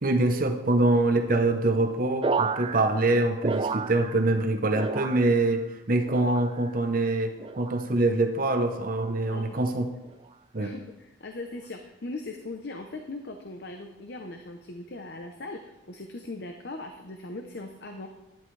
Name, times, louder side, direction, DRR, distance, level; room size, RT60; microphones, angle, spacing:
voice 1, 0.0-9.9 10.5-10.7, right 2 dB, 45° right, 5 dB, 0.8 m, -24 dB
sound 1, 2.2-4.4 4.7-5.6 6.1-6.8 7.4-7.8 8.7-9.1 10.0-10.3, right 4 dB, 25° right, 0.3 m, -32 dB
voice 2, 10.6-18.1, left 2 dB, 55° left, 5 dB, 0.7 m, -39 dB
11.0 x 10.5 x 3.3 m, 0.96 s
head